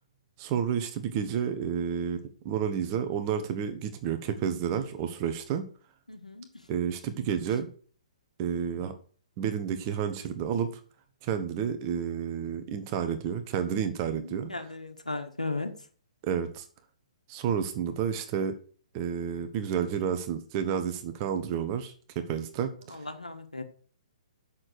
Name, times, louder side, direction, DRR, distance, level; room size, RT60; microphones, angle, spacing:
voice 1, 0.4-5.7 6.7-7.7 8.4-8.9 9.4-10.8 11.2-14.5 16.2-16.6 17.3-18.6 18.9-23.0, right 8 dB, 30° right, 8 dB, 1.2 m, -30 dB
voice 2, 6.1-6.5 14.5-15.7 22.9-23.6, left 2 dB, 90° left, 6 dB, 1.6 m, -35 dB
7.3 x 6.5 x 6.7 m, 0.43 s
figure-of-eight pair, 125°, 4 cm